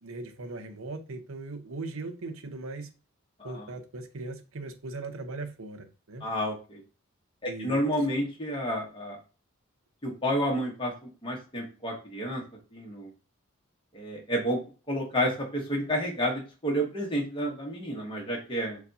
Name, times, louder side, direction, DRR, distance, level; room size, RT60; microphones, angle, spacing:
voice 1, 0.0-2.9 3.4-6.3 7.5-7.8, right 3 dB, 65° right, 6 dB, 0.7 m, -39 dB
voice 2, 6.2-6.8 7.4-9.2 10.0-10.9 11.2-12.4 12.7-13.1 13.9-14.6 14.9-18.8, equal, 25° left, -1 dB, 1.1 m, -30 dB
6.8 x 2.3 x 2.7 m, 0.34 s
head